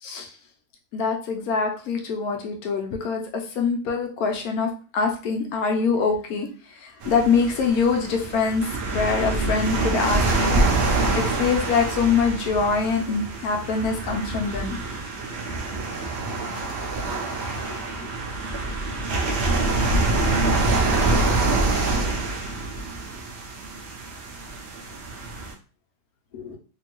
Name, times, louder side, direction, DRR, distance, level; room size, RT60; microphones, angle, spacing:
voice 1, 0.0-0.3 0.9-10.6 11.2-14.8 18.0-18.1 20.7-21.4 26.3-26.6, left 5 dB, 70° left, 2 dB, 0.9 m, -24 dB
sound 1, 7.0-25.5, right 2 dB, 70° right, 0.6 m, -25 dB
2.8 x 2.6 x 2.9 m, 0.38 s
omnidirectional pair, 1.8 m